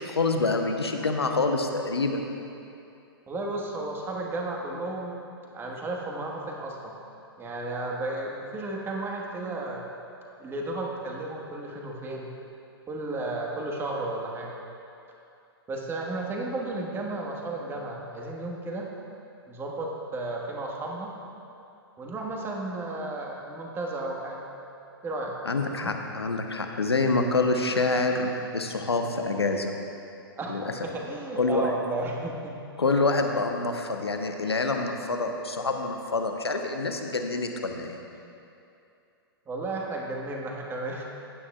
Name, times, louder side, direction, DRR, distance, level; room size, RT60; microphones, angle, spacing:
voice 1, 0.0-2.2 25.4-29.7 30.5-30.6 31.4-31.7 32.8-38.0, left 3 dB, 90° left, 4 dB, 0.9 m, -26 dB
voice 2, 3.3-5.1 5.5-6.9 7.4-9.8 10.4-12.3 12.9-14.6 15.7-18.9 19.5-21.1 22.0-24.4 25.0-25.3 25.7-25.9 30.4-32.6 39.5-41.0, right 2 dB, 15° right, -1 dB, 1.5 m, -33 dB
15.5 x 9.7 x 2.4 m, 2.7 s
hypercardioid pair, 115°, 13 cm